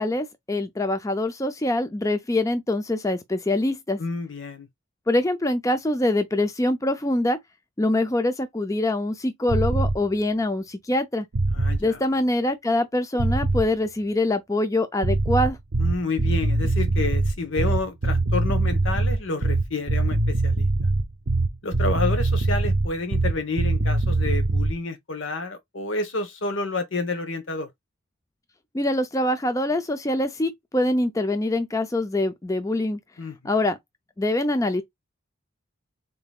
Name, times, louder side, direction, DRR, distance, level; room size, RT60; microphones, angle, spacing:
voice 1, 0.0-4.0 5.1-7.4 7.8-11.3 11.8-15.6 28.7-33.0 33.4-33.8 34.2-34.8, left 1 dB, 15° left, 0.5 m, -24 dB
voice 2, 4.0-4.7 11.5-12.0 15.8-20.7 21.6-27.7 33.2-33.5, left 3 dB, 70° left, 1.0 m, -29 dB
sound 1, 9.5-10.0 11.3-11.9 13.2-13.7 15.0-24.8, right 2 dB, 75° right, 0.6 m, -22 dB
3.8 x 3.8 x 2.3 m
head